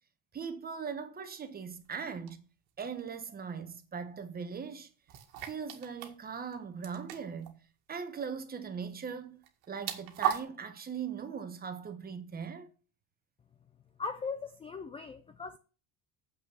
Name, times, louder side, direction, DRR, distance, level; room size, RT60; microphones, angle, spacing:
voice 1, 0.3-2.5 2.8-4.9 5.4-7.6 7.9-9.4 9.7-12.7, right 6 dB, 25° right, 1.2 m, -40 dB
sound 1, 2.3-2.4 5.1-6.1 6.4-6.5 6.8-7.5 9.4-10.4, right 10 dB, 85° right, 1.9 m, -35 dB
voice 2, 14.0-15.6, left 4 dB, 15° left, 0.4 m, -39 dB
7.5 x 6.2 x 7.0 m
cardioid pair, 160°, 38 cm